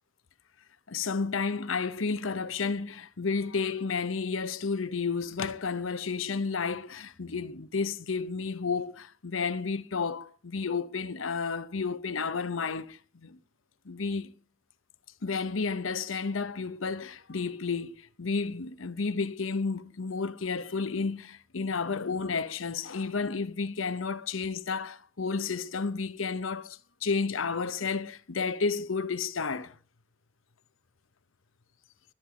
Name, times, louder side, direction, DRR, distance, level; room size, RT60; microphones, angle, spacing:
voice 1, 0.9-13.4 13.8-14.3 15.2-29.7, left 4 dB, 80° left, 0.9 m, -31 dB
21.0 x 10.0 x 4.9 m
head